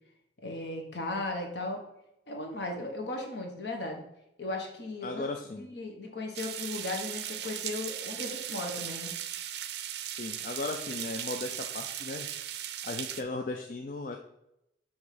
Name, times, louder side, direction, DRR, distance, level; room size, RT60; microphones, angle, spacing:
voice 1, 0.4-1.8 2.3-4.0 4.4-9.1, left 2 dB, 65° left, 2 dB, 1.3 m, -36 dB
voice 2, 5.0-5.6 10.2-12.3 12.8-14.2, left 3 dB, 45° left, 3 dB, 0.4 m, -36 dB
sound 1, 6.3-13.2, right 11 dB, 60° right, 0.5 m, -37 dB
7.2 x 3.6 x 5.0 m, 0.85 s
head